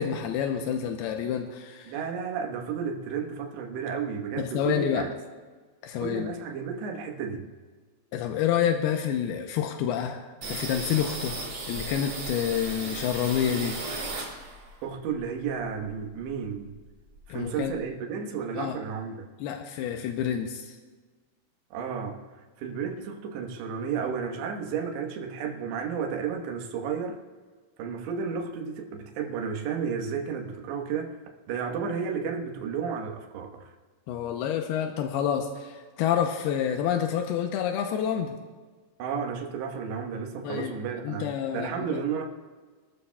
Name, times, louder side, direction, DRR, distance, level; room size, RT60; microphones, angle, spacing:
voice 1, 0.0-1.9 4.4-5.1 5.8-6.3 8.1-11.4 11.7-13.8 17.3-17.7 18.6-18.8 19.4-20.8 34.1-38.4 40.4-40.7 41.0-41.7, left 9 dB, 85° left, 4 dB, 2.3 m, -28 dB
voice 2, 1.9-5.1 6.0-7.5 14.8-16.8 17.3-19.3 21.7-22.2 22.6-27.2 27.8-31.2 31.5-33.7 39.0-42.3, right 6 dB, 70° right, 2 dB, 3.3 m, -32 dB
sound 1, 10.4-14.8 15.1-16.5 16.8-16.9 17.1-17.8, right 3 dB, 35° right, 3.0 m, -36 dB
25.5 x 13.0 x 2.3 m, 1.4 s
omnidirectional pair, 5.4 m